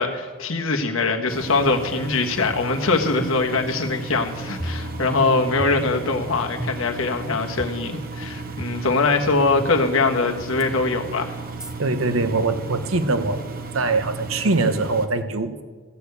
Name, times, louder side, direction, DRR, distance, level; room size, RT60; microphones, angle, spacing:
voice 1, 0.0-11.3, left 3 dB, 80° left, 4 dB, 1.3 m, -22 dB
Engine, 1.3-15.1, right 3 dB, 45° right, 0.9 m, -35 dB
sound 1, 4.6-5.3 5.6-6.2 6.6-7.1 7.6-7.7 8.6-8.7 9.6-9.7 10.6-10.7 11.6-11.7, equal, 5° right, 0.6 m, -34 dB
voice 2, 11.8-13.4 13.7-15.6, right 3 dB, 80° right, 9 dB, 1.0 m, -22 dB
14.5 x 6.6 x 8.2 m, 1.5 s
head